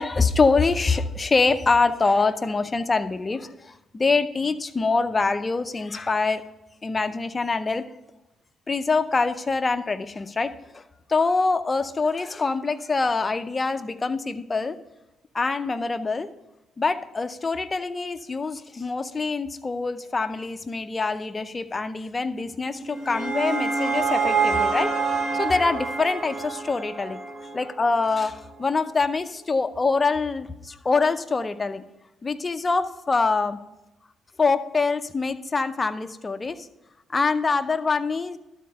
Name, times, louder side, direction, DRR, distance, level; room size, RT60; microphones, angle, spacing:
voice 1, 0.0-6.4 6.8-7.8 8.7-10.8 11.1-14.8 15.3-16.3 16.8-24.9 25.3-27.2 27.5-31.8 32.2-33.6 34.4-36.7 37.1-38.4, left 4 dB, 25° left, 9 dB, 0.6 m, -24 dB
sound 1, 22.7-27.9, right 4 dB, 30° right, 1.1 m, -26 dB
12.0 x 4.3 x 5.6 m, 0.95 s
cardioid pair, 90°, 0 cm